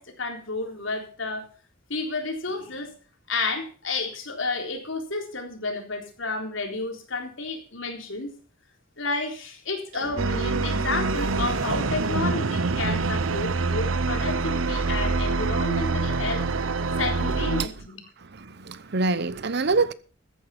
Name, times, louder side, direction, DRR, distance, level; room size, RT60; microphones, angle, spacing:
voice 1, 0.0-1.4 1.9-2.9 3.3-8.3 9.0-16.5 17.0-18.0, left 3 dB, 70° left, 3.8 m, -31 dB
sound 1, 9.1-9.3 9.9-13.7, right 2 dB, 75° right, 2.5 m, -37 dB
sound 2, 10.2-17.7, right 3 dB, 90° right, 0.8 m, -26 dB
voice 2, 18.3-19.9, right 3 dB, 55° right, 0.8 m, -25 dB
14.5 x 9.4 x 6.0 m
head